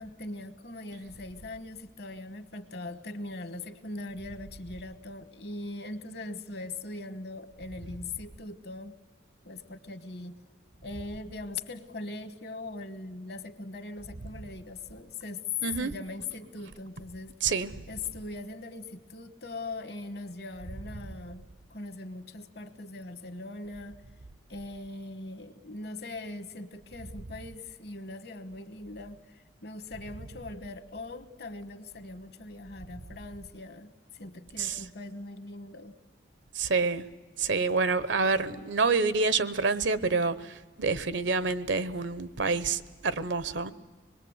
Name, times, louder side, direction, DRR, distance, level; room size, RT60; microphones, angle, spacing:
voice 1, 0.0-8.9 9.4-10.4 10.8-15.4 15.8-17.3 17.9-24.0 24.5-35.9, left 2 dB, 60° left, 1.3 m, -41 dB
voice 2, 15.6-15.9 17.4-17.8 34.6-34.8 36.5-37.0 37.4-43.7, right 4 dB, 80° right, 0.9 m, -27 dB
25.5 x 21.0 x 8.0 m
head